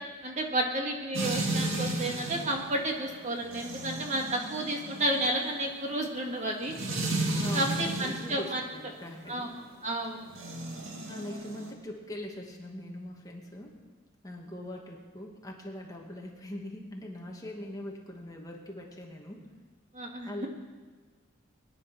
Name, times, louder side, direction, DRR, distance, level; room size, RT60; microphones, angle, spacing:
voice 1, 0.2-6.7 7.5-8.6 9.3-9.5 9.8-10.3 19.9-20.5, right 1 dB, 40° right, 1 dB, 2.0 m, -31 dB
sound 1, 1.1-8.4 10.3-11.7, right 2 dB, 90° right, 2.3 m, -34 dB
voice 2, 7.4-9.5 11.1-13.7 14.2-19.5 20.2-20.5, left 1 dB, 20° left, -1 dB, 2.2 m, -41 dB
22.0 x 10.5 x 6.2 m, 1.4 s
head